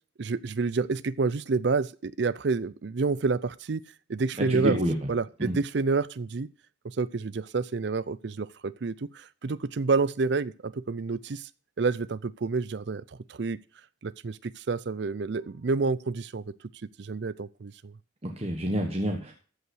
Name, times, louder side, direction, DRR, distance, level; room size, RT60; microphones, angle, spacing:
voice 1, 0.2-3.8 4.1-4.8 5.1-6.5 6.8-11.5 11.8-13.0 13.3-13.6 14.0-16.5 16.8-17.9, right 4 dB, 60° right, 18 dB, 0.5 m, -29 dB
voice 2, 4.4-4.9 5.4-5.6 18.2-19.3, equal, 30° right, 2 dB, 1.3 m, -28 dB
14.0 x 5.6 x 6.3 m, 0.39 s
head